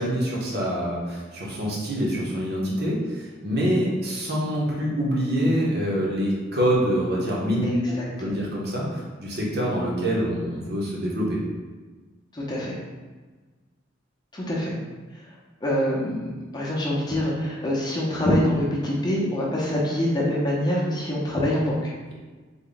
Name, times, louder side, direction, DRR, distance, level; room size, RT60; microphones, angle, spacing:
voice 1, 0.0-11.4, equal, 55° right, -4 dB, 0.8 m, -25 dB
voice 2, 12.3-12.8 14.3-14.7 15.6-16.3 16.5-21.9, left 1 dB, 20° left, -5 dB, 0.6 m, -25 dB
3.5 x 2.2 x 3.8 m, 1.3 s
head